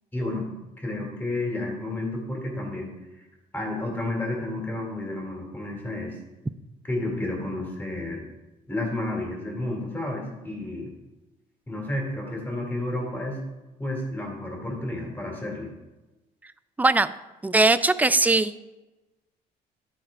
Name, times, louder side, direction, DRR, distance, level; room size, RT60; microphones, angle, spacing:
voice 1, 0.1-0.5 0.8-2.9 3.5-6.2 6.8-8.3 8.7-10.9 11.7-13.4 13.8-15.7, left 1 dB, 10° left, 0 dB, 2.8 m, -31 dB
voice 2, 16.8-17.1 17.4-18.6, right 2 dB, 10° right, 14 dB, 0.3 m, -20 dB
11.5 x 4.4 x 4.7 m, 1.1 s
cardioid pair, 110°, 17 cm